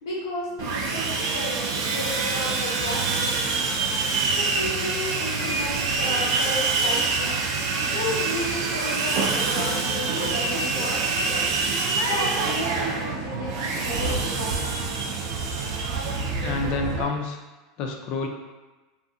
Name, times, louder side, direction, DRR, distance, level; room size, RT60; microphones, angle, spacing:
voice 1, 0.0-1.6 1.9-3.3 4.3-7.3 7.9-11.5 12.1-14.9, left 2 dB, 90° left, -4 dB, 0.9 m, -33 dB
Sawing, 0.6-17.0, right 4 dB, 65° right, 0.4 m, -26 dB
voice 2, 16.4-17.4 17.8-18.3, left 4 dB, 50° left, 3 dB, 0.3 m, -28 dB
2.4 x 2.3 x 2.7 m, 1.2 s
supercardioid pair, 125°, 2 cm